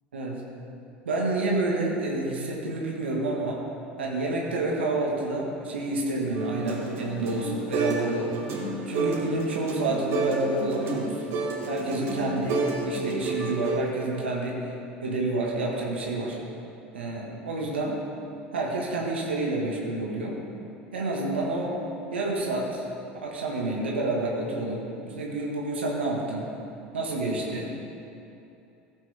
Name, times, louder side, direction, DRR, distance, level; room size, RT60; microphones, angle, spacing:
voice 1, 1.0-3.6 4.0-8.4 8.9-11.2 11.6-14.6 15.0-16.4 16.9-18.0 18.5-20.4 20.9-21.8 22.1-22.8 23.2-26.5 26.9-27.7, right 2 dB, 85° right, -2 dB, 1.8 m, -29 dB
sound 1, 6.3-8.1 8.3-13.8, right 3 dB, 50° right, 2.7 m, -30 dB
16.0 x 8.2 x 3.5 m, 2.8 s
hypercardioid pair, 70°, 6 cm